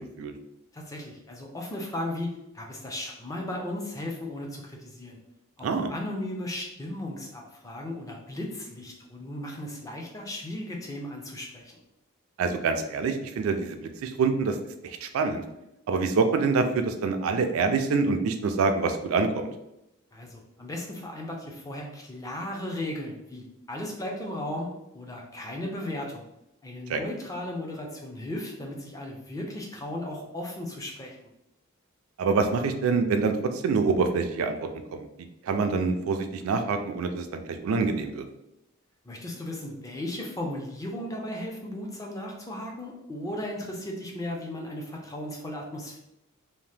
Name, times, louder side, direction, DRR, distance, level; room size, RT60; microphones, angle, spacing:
voice 1, 0.7-5.2 5.6-11.8 20.1-26.2 26.6-31.3 39.0-46.0, left 1 dB, 15° left, 0 dB, 0.4 m, -36 dB
voice 2, 12.4-14.6 14.8-15.4 15.9-19.5 26.9-27.0 32.2-35.1 35.4-38.2, right 4 dB, 70° right, 7 dB, 0.3 m, -26 dB
2.8 x 2.0 x 3.2 m, 0.87 s
head